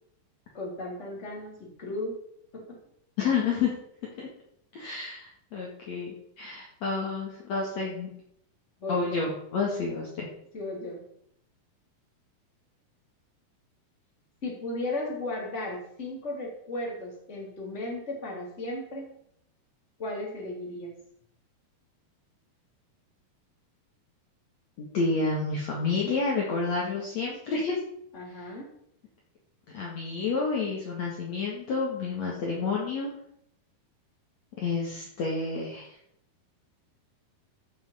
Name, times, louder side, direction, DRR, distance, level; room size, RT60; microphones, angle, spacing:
voice 1, 0.5-2.1 2.5-2.8 8.8-9.2 10.5-11.0 14.4-19.1 20.0-20.9 28.1-28.7, left 2 dB, 20° left, -1 dB, 3.2 m, -35 dB
voice 2, 3.2-3.7 4.2-4.3 4.7-8.1 8.9-10.3 24.8-27.8 29.7-33.1 34.6-35.9, left 4 dB, 50° left, -3 dB, 2.7 m, -29 dB
15.0 x 6.1 x 5.6 m, 0.71 s
omnidirectional pair, 4.4 m